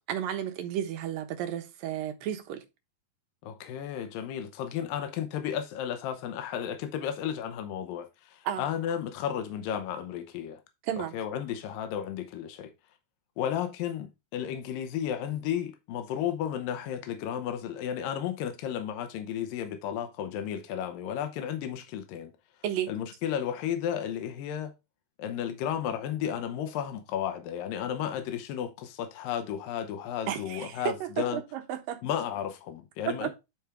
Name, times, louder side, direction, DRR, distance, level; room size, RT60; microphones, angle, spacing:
voice 1, 0.1-2.6 8.4-8.7 10.8-11.2 22.6-22.9 30.3-32.0 33.0-33.3, right 10 dB, 85° right, 2.9 m, -32 dB
voice 2, 3.4-10.6 11.1-12.7 13.4-22.3 22.9-24.7 25.2-31.4 32.0-33.3, left 9 dB, 80° left, 2.6 m, -33 dB
10.5 x 4.5 x 3.5 m
omnidirectional pair, 3.9 m